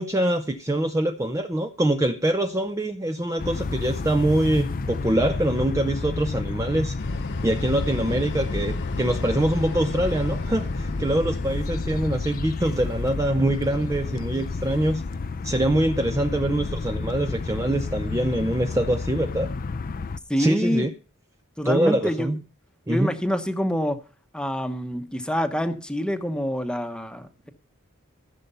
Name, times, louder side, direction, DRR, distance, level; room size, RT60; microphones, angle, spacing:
voice 1, 0.0-7.0 7.4-15.0 15.4-19.5 20.4-20.9 21.6-22.4 22.9-23.1, right 1 dB, 15° right, 0.6 m, -24 dB
sound 1, 3.4-20.2, left 3 dB, 40° left, 0.5 m, -30 dB
sound 2, 7.0-12.1, left 1 dB, 60° left, 1.3 m, -34 dB
voice 2, 20.3-20.9 21.6-22.3 22.9-24.0 24.3-27.5, equal, 5° left, 1.0 m, -26 dB
15.0 x 6.8 x 5.5 m
head